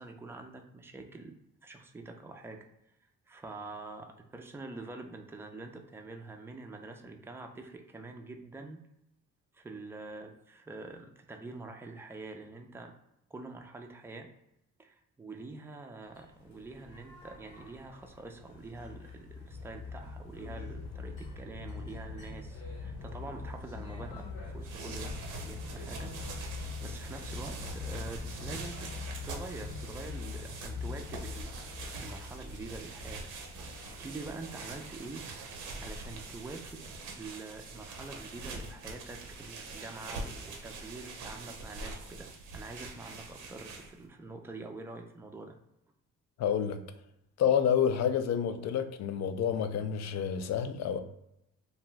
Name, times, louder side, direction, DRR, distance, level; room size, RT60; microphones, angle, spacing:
voice 1, 0.0-1.4 1.6-2.6 3.3-8.8 9.5-12.9 13.3-14.3 14.8-25.1 25.4-26.1 26.5-31.5 32.0-33.3 33.7-35.2 35.6-42.3 42.5-45.6, right 3 dB, 10° right, 3 dB, 0.4 m, -45 dB
sound 1, 16.1-35.3, left 4 dB, 80° left, 0.8 m, -43 dB
sound 2, 24.5-44.1, right 3 dB, 85° right, 0.7 m, -44 dB
voice 2, 46.4-46.8 47.4-51.0, left 8 dB, 60° left, 9 dB, 0.4 m, -29 dB
2.5 x 2.3 x 3.1 m, 0.81 s
cardioid pair, 90°, 30 cm